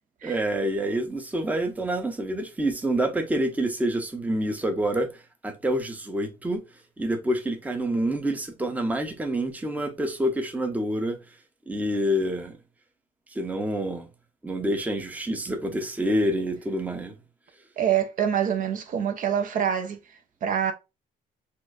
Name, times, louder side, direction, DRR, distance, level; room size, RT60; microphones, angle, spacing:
voice 1, 0.2-5.1 5.4-6.6 7.0-11.2 11.7-12.6 13.3-14.1 14.4-17.1, right 1 dB, 10° right, 0.6 m, -27 dB
voice 2, 17.8-20.0 20.4-20.7, right 9 dB, 50° right, 0.5 m, -25 dB
4.3 x 2.4 x 2.3 m
cardioid pair, 110°, 17 cm